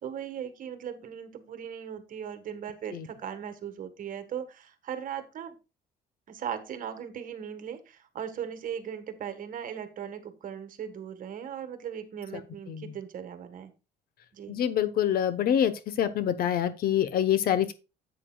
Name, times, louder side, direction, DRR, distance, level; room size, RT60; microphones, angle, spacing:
voice 1, 0.0-5.5 6.3-13.7 14.3-14.6, right 8 dB, 55° right, 1.5 m, -38 dB
voice 2, 14.5-15.7 16.0-17.7, left 10 dB, 60° left, 1.1 m, -26 dB
10.5 x 8.3 x 2.3 m
cardioid pair, 110°, 17 cm